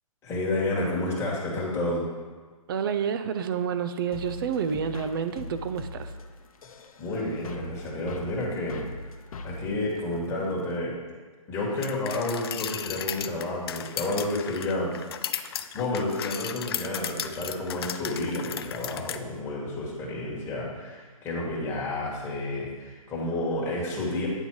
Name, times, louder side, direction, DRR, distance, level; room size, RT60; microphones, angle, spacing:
voice 1, 0.2-2.0 7.0-8.8 9.4-10.9 11.5-14.9 15.7-24.3, left 2 dB, 15° left, -5 dB, 1.4 m, -30 dB
voice 2, 2.7-6.1 15.4-15.5, right 7 dB, 40° right, 10 dB, 0.4 m, -29 dB
sound 1, 4.1-10.8, left 2 dB, 70° left, 0.7 m, -41 dB
sound 2, 11.8-19.2, left 9 dB, 45° left, 0.4 m, -35 dB
8.8 x 3.9 x 4.6 m, 1.4 s
hypercardioid pair, 150°, 19 cm